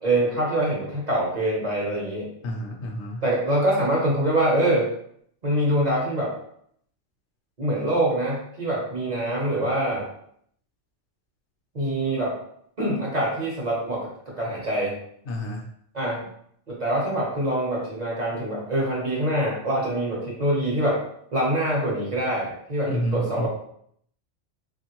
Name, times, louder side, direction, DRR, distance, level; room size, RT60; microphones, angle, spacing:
voice 1, 0.0-2.3 3.2-4.9 5.4-6.3 7.6-10.1 11.7-12.3 12.8-14.1 14.4-15.0 15.9-16.3 16.7-21.0 21.3-23.5, right 1 dB, 40° right, -4 dB, 0.9 m, -24 dB
voice 2, 2.4-3.2 15.3-15.7 22.9-23.5, equal, 70° left, 0 dB, 0.9 m, -29 dB
3.2 x 2.5 x 2.9 m, 0.67 s
omnidirectional pair, 1.3 m